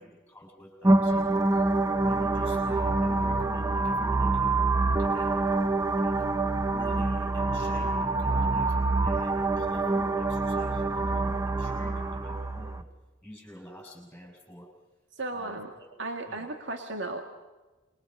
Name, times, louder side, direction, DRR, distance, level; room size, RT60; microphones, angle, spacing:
voice 1, 0.0-1.6 2.0-4.6 5.0-5.4 5.7-6.2 6.6-12.9 13.2-14.7 15.3-15.9 16.3-16.5, equal, 10° left, 1 dB, 6.4 m, -47 dB
sound 1, 0.8-12.8, right 2 dB, 15° right, 0.8 m, -26 dB
voice 2, 15.2-15.7 16.0-17.2, right 2 dB, 65° right, 4 dB, 2.0 m, -35 dB
27.5 x 22.5 x 5.4 m, 1.1 s
head